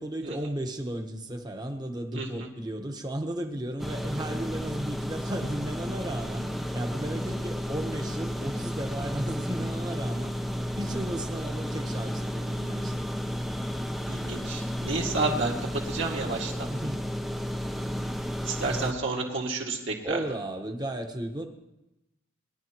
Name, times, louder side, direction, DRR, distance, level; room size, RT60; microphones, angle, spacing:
voice 1, 0.0-6.5 6.7-10.3 10.7-13.1 16.7-17.0 20.0-21.5, right 1 dB, 20° right, 4 dB, 1.2 m, -35 dB
voice 2, 2.1-2.5 14.1-16.7 18.4-20.2, right 3 dB, 60° right, -1 dB, 2.2 m, -30 dB
sound 1, 3.8-18.9, equal, ahead, 0.6 m, -32 dB
21.5 x 11.0 x 3.0 m, 0.93 s
head